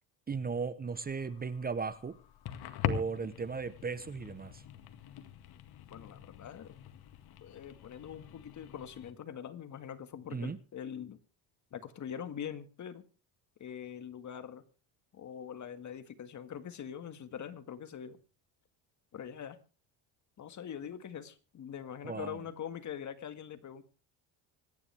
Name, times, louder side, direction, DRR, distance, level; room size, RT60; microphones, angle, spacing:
voice 1, 0.3-2.2 2.8-4.6 10.3-10.6 22.0-22.4, right 5 dB, 20° right, 0.9 m, -36 dB
sound 1, 0.9-9.1, left 10 dB, 60° left, 2.0 m, -42 dB
voice 2, 5.9-6.7 7.4-11.2 11.7-13.1 13.6-14.6 15.1-18.2 19.1-19.6 20.4-23.8, left 8 dB, 45° left, 1.9 m, -43 dB
25.5 x 10.5 x 3.5 m
cardioid pair, 115°, 42 cm